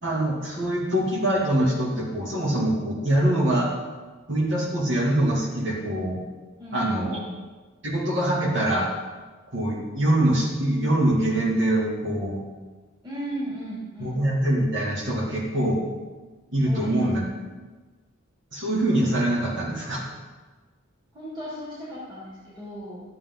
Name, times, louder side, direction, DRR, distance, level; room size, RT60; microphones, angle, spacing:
voice 1, 0.0-3.7 4.3-6.2 6.7-7.2 7.8-8.9 9.5-12.4 14.0-15.8 16.5-17.2 18.5-20.0, right 1 dB, 65° right, -3 dB, 2.6 m, -24 dB
voice 2, 6.6-7.3 13.0-14.2 16.7-17.0 21.1-23.0, right 1 dB, 25° right, -9 dB, 3.0 m, -36 dB
12.5 x 8.6 x 3.9 m, 1.3 s
head